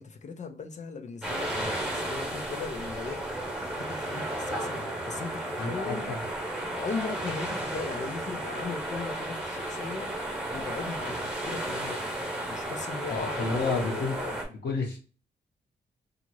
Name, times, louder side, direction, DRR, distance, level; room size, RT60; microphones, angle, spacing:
voice 1, 0.0-3.2 3.8-6.1 6.7-10.1 10.5-12.1 12.5-14.4, left 4 dB, 45° left, 0.5 m, -38 dB
sound 1, 1.2-14.4, right 1 dB, 5° right, 1.1 m, -33 dB
voice 2, 5.6-6.2 13.1-14.2 14.5-15.0, left 3 dB, 90° left, 1.0 m, -31 dB
2.8 x 2.4 x 2.9 m
wide cardioid pair, 145°, 18 cm